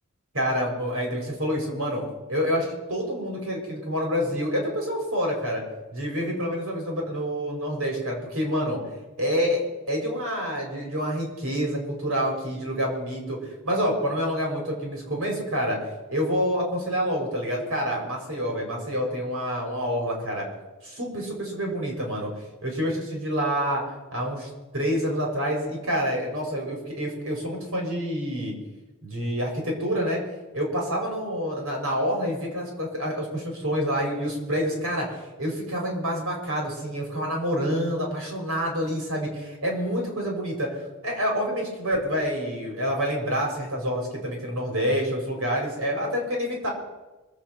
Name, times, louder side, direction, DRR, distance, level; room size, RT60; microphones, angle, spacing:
voice 1, 0.3-2.0 2.3-5.6 5.9-8.8 9.2-15.8 16.1-20.5 20.8-22.3 22.6-23.8 24.1-28.5 29.0-30.2 30.5-39.3 39.6-46.7, equal, 70° right, 0 dB, 5.3 m, -27 dB
25.0 x 8.4 x 6.1 m, 1.1 s
head